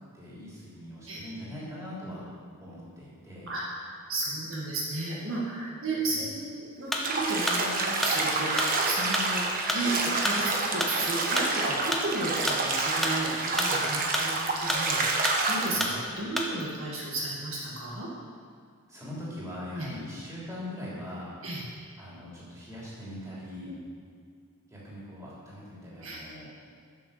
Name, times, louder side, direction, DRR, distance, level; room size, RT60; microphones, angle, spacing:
voice 1, 0.1-2.2 2.6-3.5 6.0-6.3 15.7-15.9 18.9-21.3 22.0-23.7 24.7-26.5, left 1 dB, 15° right, -7 dB, 3.3 m, -41 dB
voice 2, 3.5-9.9 10.2-18.1 19.7-19.9 21.4-21.6 23.6-23.7 26.0-26.2, right 2 dB, 65° right, -4 dB, 2.0 m, -34 dB
sound 1, 6.9-16.7, left 1 dB, ahead, 1.0 m, -32 dB
Bathtub (filling or washing), 7.0-15.8, right 3 dB, 40° right, 1.2 m, -28 dB
11.5 x 6.8 x 6.8 m, 2.2 s
head